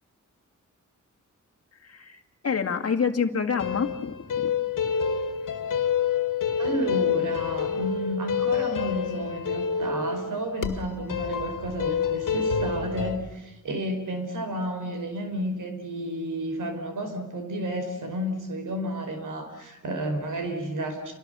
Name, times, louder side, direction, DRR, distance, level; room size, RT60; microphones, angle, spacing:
voice 1, 1.8-4.5, left 6 dB, 50° left, 4 dB, 2.0 m, -28 dB
sound 1, 3.6-13.2, left 7 dB, 80° left, 2.0 m, -28 dB
voice 2, 6.6-21.1, right 1 dB, 80° right, 5 dB, 5.2 m, -31 dB
29.5 x 24.5 x 6.9 m, 1.0 s
wide cardioid pair, 110°, 31 cm